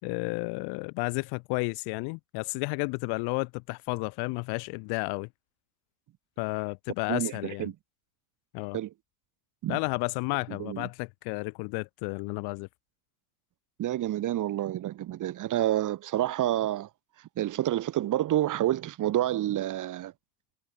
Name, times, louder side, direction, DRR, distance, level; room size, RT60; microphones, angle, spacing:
voice 1, 0.0-5.3 6.4-7.7 8.5-8.8 9.7-12.7, left 31 dB, 60° left, 6.7 m, -32 dB
voice 2, 7.1-7.7 8.7-8.9 9.6-9.8 10.6-10.9 13.8-16.9 17.4-20.1, right 13 dB, 45° right, 7.8 m, -28 dB
hypercardioid pair, 100°, 43 cm